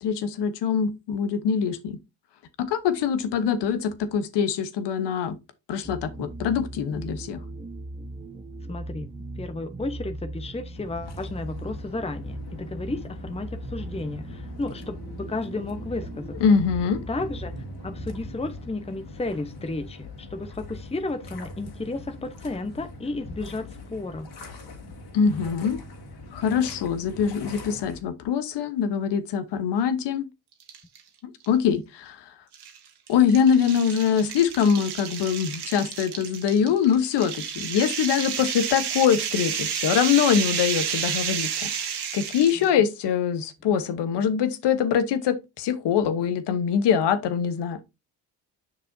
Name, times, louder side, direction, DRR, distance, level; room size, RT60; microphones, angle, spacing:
voice 1, 0.0-2.0 2.6-5.4 5.7-7.4 16.4-17.0 25.1-25.8 26.3-30.3 31.5-32.2 33.1-41.7 42.1-47.8, left 7 dB, 85° left, 1.1 m, -23 dB
sound 1, 5.8-18.5, right 2 dB, 15° right, 1.0 m, -39 dB
voice 2, 8.7-9.1 9.4-16.4 17.1-24.3, left 2 dB, 15° left, 0.9 m, -33 dB
sound 2, 10.7-28.0, left 2 dB, 65° left, 2.4 m, -41 dB
sound 3, 30.6-31.0 31.4-31.5 32.5-42.7, right 8 dB, 75° right, 1.6 m, -31 dB
7.4 x 6.2 x 2.7 m
supercardioid pair, 60°, 40 cm